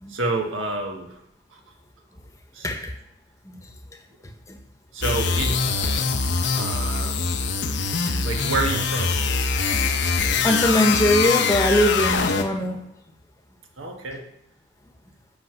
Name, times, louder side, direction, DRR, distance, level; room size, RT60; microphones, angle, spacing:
voice 1, 0.1-1.2 1.5-1.6 2.5-2.7 4.9-5.7 6.5-7.2 8.2-9.3 13.8-14.2, right 2 dB, 85° right, 3 dB, 1.5 m, -28 dB
sound 1, 5.0-12.7, left 4 dB, 60° left, 0.9 m, -23 dB
voice 2, 10.4-12.8, left 1 dB, 15° left, 4 dB, 1.1 m, -21 dB
8.6 x 5.5 x 6.8 m, 0.78 s
head